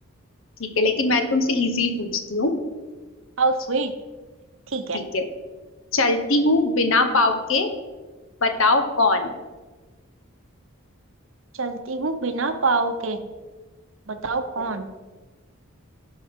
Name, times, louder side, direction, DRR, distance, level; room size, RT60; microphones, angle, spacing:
voice 1, 0.6-2.5 4.9-5.3 5.9-7.7 8.4-9.3, left 2 dB, 65° left, 7 dB, 1.0 m, -21 dB
voice 2, 3.4-3.9 4.7-5.0 11.5-13.2 14.1-14.9, right 3 dB, 65° right, 8 dB, 0.8 m, -25 dB
15.5 x 5.5 x 3.6 m, 1.3 s
head